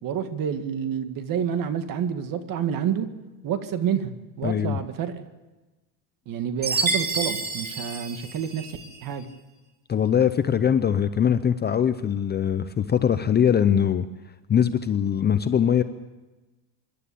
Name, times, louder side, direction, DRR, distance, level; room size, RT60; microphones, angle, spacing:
voice 1, 0.0-3.1 3.4-4.1 4.4-5.2 6.3-9.3, right 8 dB, 45° right, 9 dB, 1.9 m, -28 dB
voice 2, 4.4-4.8 9.9-14.0 14.5-15.8, left 8 dB, 20° left, 11 dB, 0.6 m, -22 dB
Chime, 6.6-8.9, right 3 dB, 20° right, 2.8 m, -28 dB
26.0 x 11.5 x 8.5 m, 1.1 s
cardioid pair, 130°, 46 cm